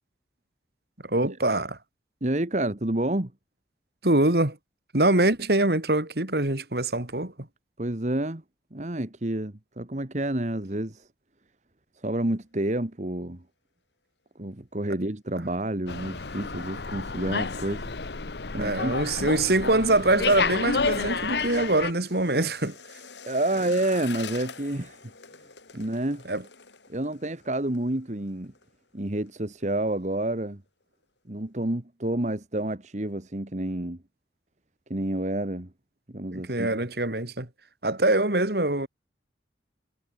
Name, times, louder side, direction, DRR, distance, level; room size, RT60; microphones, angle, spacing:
voice 1, 1.0-1.8 4.0-4.6 4.9-7.5 18.5-22.8 26.3-26.4 36.3-37.5 37.8-38.9, right 2 dB, 60° right, 2.7 m, -24 dB
voice 2, 2.2-3.3 7.8-8.4 8.7-11.1 12.0-13.4 14.4-17.8 18.5-18.9 23.3-25.1 25.7-26.2 26.9-28.5 28.9-30.6 31.3-34.0 34.9-35.7 36.1-36.7, right 1 dB, 40° right, 1.6 m, -29 dB
Slam, 15.9-21.9, left 4 dB, 70° left, 1.1 m, -30 dB
sound 1, 19.8-28.7 29.0-29.3 29.6-30.1 30.5-30.6, left 5 dB, 90° left, 7.6 m, -46 dB
head